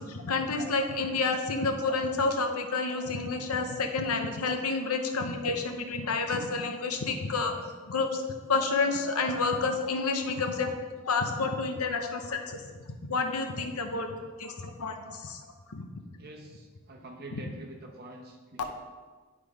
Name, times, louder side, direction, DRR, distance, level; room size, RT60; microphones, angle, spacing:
voice 1, 0.0-7.5 7.9-8.2 8.5-10.7 11.0-12.6 13.1-14.1 14.4-15.4 15.7-15.8 17.3-17.4, left 4 dB, 85° left, 5 dB, 0.8 m, -29 dB
voice 2, 16.0-18.7, right 1 dB, 45° right, 1 dB, 1.0 m, -46 dB
9.9 x 3.7 x 4.9 m, 1.4 s
head